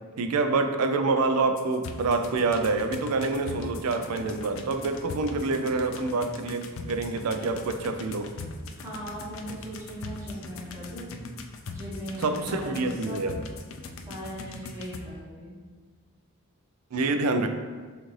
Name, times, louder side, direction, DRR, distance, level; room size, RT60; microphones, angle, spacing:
voice 1, 0.2-8.3 12.2-13.4 16.9-17.5, right 3 dB, 90° right, 7 dB, 0.4 m, -27 dB
sound 1, 1.6-15.0, left 3 dB, 60° left, 0.3 m, -40 dB
voice 2, 8.8-11.1 11.7-13.2 14.1-15.6, right 1 dB, 15° right, -8 dB, 1.0 m, -39 dB
6.2 x 2.5 x 3.1 m, 1.5 s
head